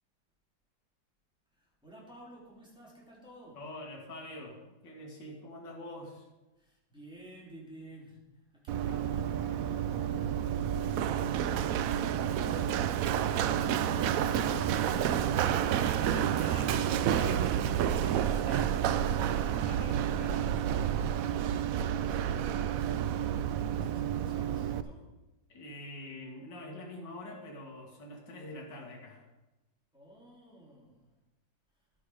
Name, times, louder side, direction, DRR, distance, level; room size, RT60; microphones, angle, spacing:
voice 1, 1.5-3.6 6.6-10.3 23.7-25.1 29.9-31.1, right 1 dB, ahead, -5 dB, 3.5 m, -53 dB
voice 2, 3.5-6.3 13.3-15.5 15.7-20.7 25.5-29.2, left 1 dB, 70° left, -1 dB, 2.5 m, -45 dB
Run, 8.7-24.8, right 9 dB, 85° right, 0.7 m, -30 dB
11.5 x 9.3 x 5.0 m, 1.0 s
omnidirectional pair, 2.0 m